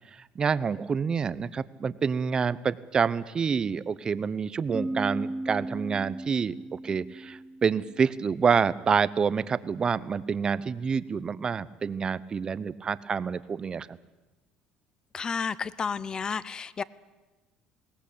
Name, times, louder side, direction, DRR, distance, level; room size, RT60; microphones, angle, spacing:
voice 1, 0.3-14.0, right 6 dB, 35° right, 17 dB, 0.8 m, -27 dB
sound 1, 4.7-8.3, right 1 dB, ahead, 1.0 m, -36 dB
voice 2, 15.1-16.8, left 5 dB, 30° left, 19 dB, 0.8 m, -31 dB
21.0 x 17.5 x 8.7 m, 1.2 s
supercardioid pair, 100°, 3 cm